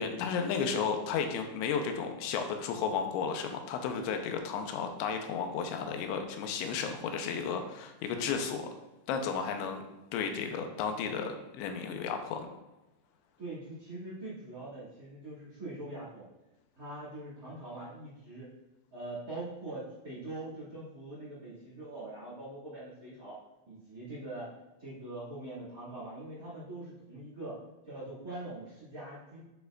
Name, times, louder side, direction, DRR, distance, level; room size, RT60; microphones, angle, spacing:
voice 1, 0.0-8.7 9.1-9.8 10.1-12.5, left 6 dB, 85° left, 5 dB, 3.0 m, -33 dB
voice 2, 13.4-16.2 16.8-18.5 18.9-23.4 23.6-24.5 24.8-27.6 27.8-29.5, right 2 dB, 35° right, -7 dB, 1.5 m, -43 dB
9.2 x 6.7 x 2.4 m, 1.0 s
omnidirectional pair, 5.3 m